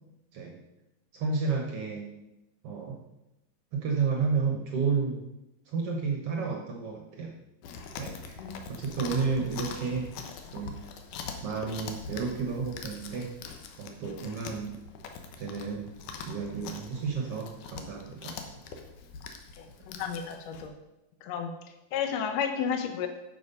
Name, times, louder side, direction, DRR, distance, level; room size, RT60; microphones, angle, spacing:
voice 1, 1.1-2.1 2.6-3.0 3.7-5.2 5.7-7.3 8.0-8.4 8.7-10.1 10.5-10.8 11.4-13.3 13.8-14.8 15.4-15.9 16.3-18.4, right 5 dB, 65° right, 1 dB, 1.5 m, -31 dB
Chewing mastication, 7.6-20.7, left 5 dB, 70° left, 2.2 m, -43 dB
voice 2, 19.6-20.7 21.2-21.5 21.9-23.1, left 7 dB, 85° left, 7 dB, 1.5 m, -32 dB
9.5 x 6.9 x 5.4 m, 0.94 s
omnidirectional pair, 4.1 m